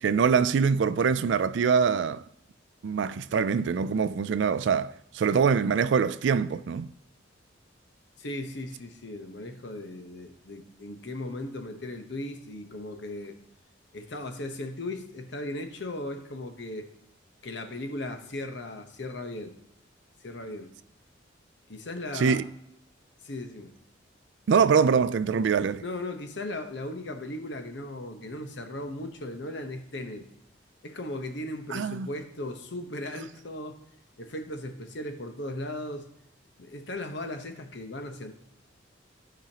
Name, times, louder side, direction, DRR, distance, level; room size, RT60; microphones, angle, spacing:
voice 1, 0.0-2.2 2.8-6.9 22.1-22.4 24.5-25.8 31.7-32.1, right 6 dB, 65° right, 0.3 m, -24 dB
voice 2, 8.2-13.4 13.9-16.9 17.4-19.5 20.2-20.7 21.7-22.4 23.2-23.7 25.8-30.2 30.8-33.8 34.2-36.1 36.6-38.3, left 1 dB, 60° left, 1.0 m, -37 dB
15.0 x 5.1 x 2.9 m
head